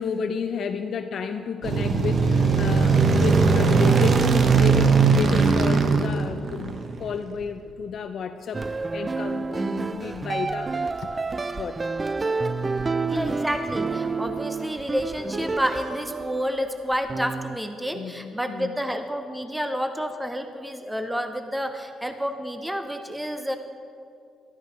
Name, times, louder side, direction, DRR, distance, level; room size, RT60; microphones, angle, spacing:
voice 1, 0.0-12.0 17.9-18.7, left 5 dB, 60° left, 6 dB, 0.6 m, -32 dB
sound 1, 1.6-7.1, right 5 dB, 45° right, 1.0 m, -19 dB
sound 2, 8.5-17.6, right 4 dB, 25° right, 0.4 m, -29 dB
voice 2, 13.1-23.6, equal, 5° right, 7 dB, 0.9 m, -29 dB
13.0 x 12.5 x 5.2 m, 2.4 s
cardioid pair, 90°, 0 cm